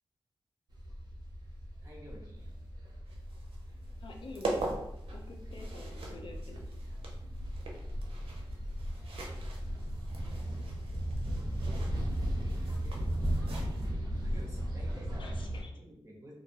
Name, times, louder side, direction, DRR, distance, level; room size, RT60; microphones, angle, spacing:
sound 1, 0.7-15.6, equal, 50° right, 0.8 m, -37 dB
voice 1, 1.8-2.5 2.9-3.0 10.1-10.6 12.2-13.4 14.0-15.3 15.7-16.3, equal, 30° right, -3 dB, 1.0 m, -52 dB
sound 2, 3.1-13.9, right 2 dB, 80° right, 0.6 m, -43 dB
voice 2, 4.0-4.8 5.1-6.6 15.2-15.7, left 3 dB, 60° left, 1 dB, 0.5 m, -49 dB
2.5 x 2.2 x 2.8 m, 0.81 s
cardioid pair, 60°, 9 cm